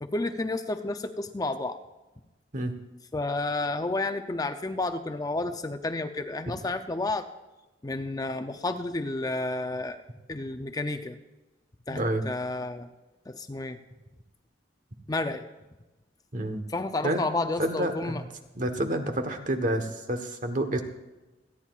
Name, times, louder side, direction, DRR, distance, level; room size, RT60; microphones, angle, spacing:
voice 1, 0.0-1.8 3.1-7.3 7.8-10.0 10.3-11.2 11.9-12.9 13.3-13.8 15.1-15.4 16.7-18.2, left 2 dB, 20° left, 7 dB, 0.5 m, -31 dB
voice 2, 11.9-12.2 16.3-16.6 17.0-17.2 17.6-18.2 18.5-20.8, right 1 dB, 45° right, 7 dB, 1.2 m, -29 dB
28.0 x 10.0 x 2.4 m, 1.1 s
head